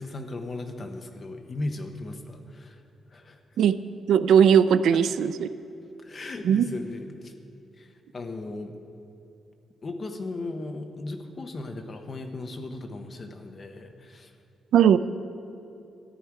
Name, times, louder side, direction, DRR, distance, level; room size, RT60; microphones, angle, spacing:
voice 1, 0.0-2.8 3.1-3.4 4.9-5.0 6.0-7.3 7.8-8.7 9.8-14.3, left 2 dB, 30° left, 6 dB, 0.9 m, -37 dB
voice 2, 4.1-5.5 6.5-6.7 14.7-15.0, right 8 dB, 80° right, 14 dB, 0.4 m, -18 dB
14.0 x 10.0 x 4.7 m, 2.7 s
wide cardioid pair, 160°, 0 cm